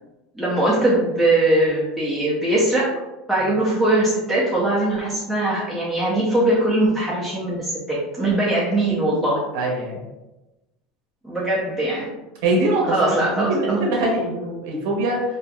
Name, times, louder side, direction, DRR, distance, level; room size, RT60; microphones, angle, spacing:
voice 1, 0.4-2.9 3.3-9.4 11.2-12.1 12.9-13.8, right 1 dB, ahead, -8 dB, 0.5 m, -21 dB
voice 2, 9.5-10.0 12.4-15.2, right 2 dB, 75° right, -1 dB, 0.7 m, -22 dB
3.0 x 2.5 x 2.3 m, 1.0 s
supercardioid pair, 140°, 0 cm